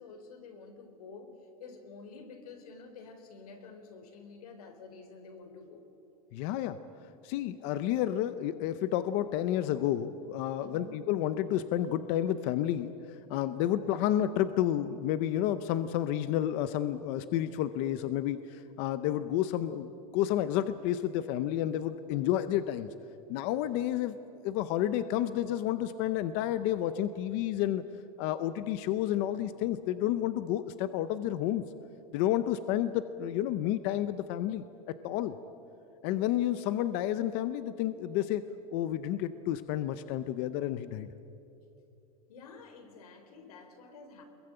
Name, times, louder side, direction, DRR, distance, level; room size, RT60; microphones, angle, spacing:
voice 1, 0.0-5.8 10.6-11.0 42.3-44.2, left 4 dB, 85° left, 7 dB, 4.1 m, -49 dB
voice 2, 6.3-6.8 7.2-12.9 13.3-22.9 23.3-24.2 24.4-27.8 28.2-31.6 32.1-35.4 36.0-41.1, left 12 dB, 35° left, 12 dB, 0.6 m, -30 dB
24.5 x 22.0 x 8.9 m, 2.8 s
supercardioid pair, 175°, 19 cm